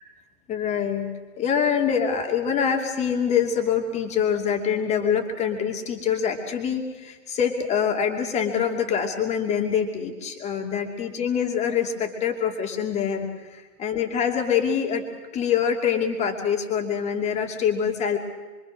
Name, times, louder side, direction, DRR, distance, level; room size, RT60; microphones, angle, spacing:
voice 1, 0.5-1.1 1.4-15.0 15.3-18.2, left 7 dB, 15° left, 4 dB, 2.6 m, -25 dB
25.0 x 24.5 x 6.4 m, 1.3 s
hypercardioid pair, 140°, 45 cm